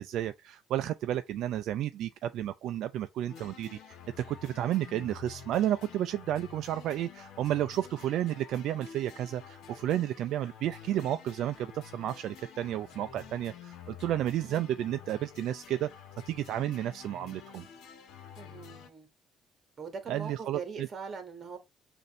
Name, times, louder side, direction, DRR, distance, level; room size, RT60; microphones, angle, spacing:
voice 1, 0.0-15.9 16.3-17.7 20.1-20.9, right 12 dB, 65° right, 0.3 m, -32 dB
sound 1, 3.3-18.9, left 8 dB, 70° left, 1.1 m, -50 dB
voice 2, 18.4-19.1 19.8-21.6, right 5 dB, 35° right, 1.4 m, -41 dB
6.7 x 2.6 x 3.0 m
cardioid pair, 140°, 0 cm